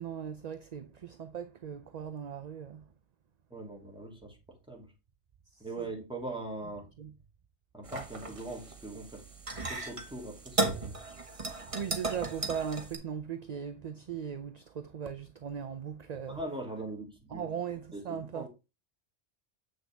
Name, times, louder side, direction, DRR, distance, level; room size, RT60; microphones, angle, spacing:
voice 1, 0.0-2.8 5.5-5.9 7.0-7.1 11.7-16.4 17.3-18.5, right 8 dB, 45° right, 0.6 m, -38 dB
voice 2, 3.5-4.4 4.7-4.9 5.6-6.9 7.7-9.2 9.7-11.0 16.3-17.5 17.9-18.5, right 2 dB, 5° right, 2.7 m, -41 dB
sound 1, 7.8-13.0, right 3 dB, 30° right, 1.3 m, -36 dB
7.8 x 6.3 x 3.4 m
omnidirectional pair, 1.1 m